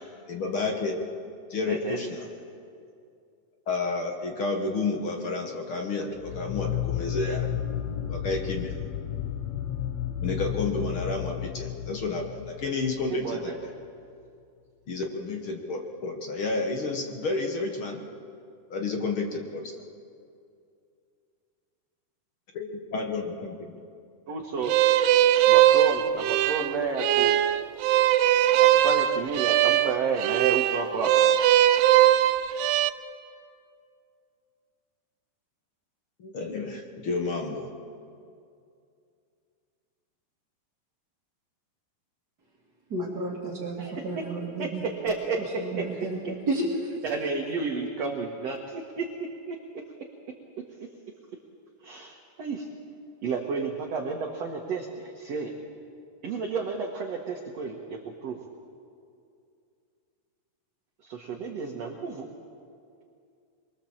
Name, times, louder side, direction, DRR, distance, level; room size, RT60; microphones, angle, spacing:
voice 1, 0.3-1.1 1.5-2.2 3.7-7.5 8.1-8.8 10.2-13.5 14.9-18.0 18.7-19.8 22.5-23.8 36.2-37.7, left 3 dB, 50° left, 2 dB, 1.6 m, -31 dB
voice 2, 1.7-2.0 13.1-13.6 24.3-24.7 25.5-27.4 28.6-31.1 43.8-43.9 44.6-45.8 46.2-46.3 47.0-49.1 49.5-49.8 51.8-52.7 53.2-55.5 56.2-58.4 61.0-62.3, right 4 dB, 55° right, 1 dB, 2.1 m, -31 dB
sound 1, 6.2-13.5, left 10 dB, 85° left, 1.4 m, -32 dB
sound 2, 24.7-32.9, right 12 dB, 85° right, 2.7 m, -21 dB
voice 3, 42.9-44.9 45.4-47.0, right 2 dB, 30° right, -5 dB, 2.2 m, -32 dB
25.0 x 23.0 x 7.4 m, 2.5 s
omnidirectional pair, 4.6 m